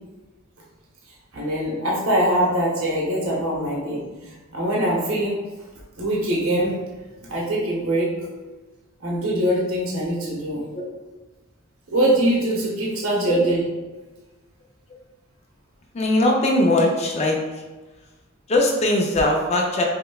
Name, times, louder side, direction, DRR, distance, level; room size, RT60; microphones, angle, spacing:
voice 1, 1.3-4.3 4.5-5.3 6.0-6.7 7.2-8.1 9.0-10.6 11.9-13.6, right 1 dB, 70° right, -4 dB, 0.8 m, -23 dB
voice 2, 15.9-17.4 18.5-19.8, left 1 dB, 30° left, 0 dB, 0.4 m, -20 dB
5.4 x 2.2 x 2.3 m, 1.2 s
head